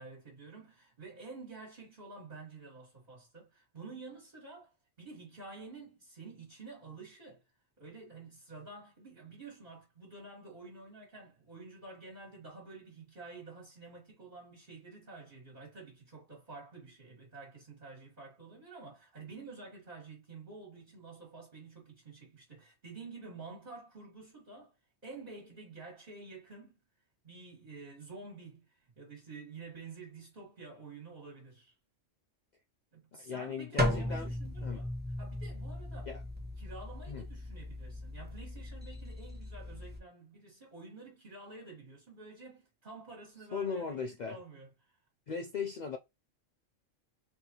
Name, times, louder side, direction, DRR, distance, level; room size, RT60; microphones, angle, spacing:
voice 1, 0.0-4.7 5.0-7.4 7.8-24.7 25.0-26.8 27.2-31.7 32.9-34.9 35.2-36.1 36.6-45.0, right 3 dB, 40° right, 1.9 m, -50 dB
voice 2, 33.2-34.3 34.6-34.8 36.1-36.2 37.1-37.2 43.5-44.4 45.3-46.0, left 5 dB, 65° left, 0.4 m, -38 dB
sound 1, 33.8-40.0, left 1 dB, 10° right, 1.0 m, -37 dB
4.0 x 3.4 x 2.9 m
omnidirectional pair, 1.3 m